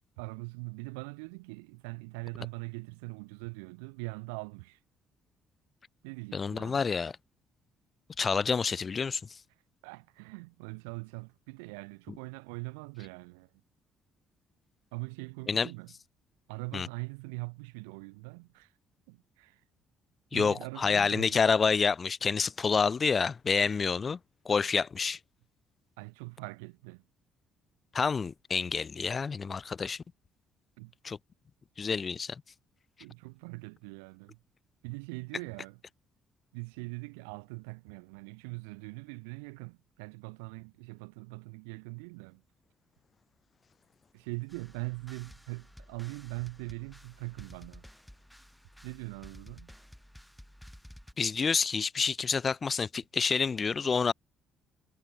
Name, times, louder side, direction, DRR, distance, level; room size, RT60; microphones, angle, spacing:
voice 1, 0.2-4.8 6.0-6.8 9.8-13.5 14.9-15.9 16.5-18.7 19.1-19.6 20.3-21.4 26.0-27.1 30.8-30.9 33.0-34.4 34.8-35.8 36.5-42.4 44.1-47.9 48.8-49.7, right 32 dB, 90° right, 6.2 m, -42 dB
voice 2, 6.3-7.1 8.2-9.4 15.5-15.7 16.7-16.9 20.3-24.2 24.4-25.2 27.9-30.0 31.0-31.2 31.8-32.4 51.2-54.1, left 5 dB, 40° left, 1.2 m, -28 dB
sound 1, 44.5-51.1, equal, ahead, 7.4 m, -53 dB
supercardioid pair, 60°, 0 cm